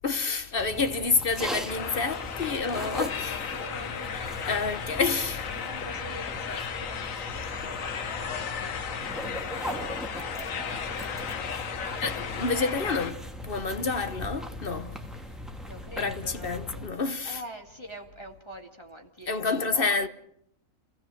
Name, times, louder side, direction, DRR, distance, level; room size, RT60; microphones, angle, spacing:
voice 1, 0.0-3.5 4.5-5.5 12.0-13.2 13.4-15.1 16.0-17.4 19.3-20.1, left 4 dB, 45° left, 1.1 m, -28 dB
sound 1, 0.6-16.9, equal, ahead, 1.8 m, -39 dB
sound 2, 1.7-13.1, left 7 dB, 70° left, 1.5 m, -35 dB
voice 2, 2.4-3.0 3.5-4.6 5.5-11.5 11.8-13.3 15.7-16.7 17.2-20.1, equal, 20° left, 2.1 m, -45 dB
27.5 x 16.5 x 7.7 m
omnidirectional pair, 1.5 m